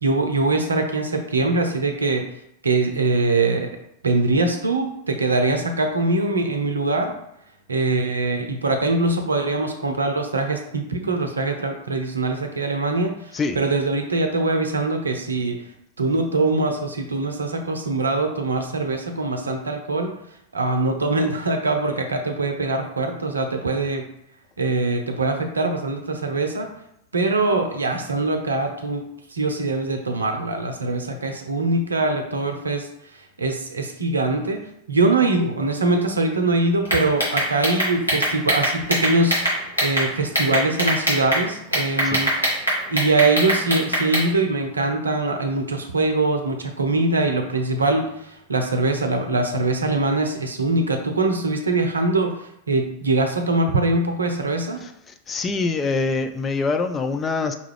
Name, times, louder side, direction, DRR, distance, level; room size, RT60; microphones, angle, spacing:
voice 1, 0.0-2.2 2.6-3.7 4.0-7.2 7.7-15.6 16.0-20.1 20.5-24.1 24.6-26.7 27.1-32.9 33.4-39.4 39.8-42.5 42.9-54.8, right 2 dB, 75° right, 5 dB, 0.6 m, -23 dB
sound 1, 36.8-40.0 40.3-41.4 41.7-44.3, equal, 85° left, 1.5 m, -21 dB
voice 2, 55.3-57.5, left 4 dB, 20° left, 6 dB, 0.4 m, -24 dB
5.3 x 2.4 x 3.2 m, 0.79 s
figure-of-eight pair, 90°, 0 cm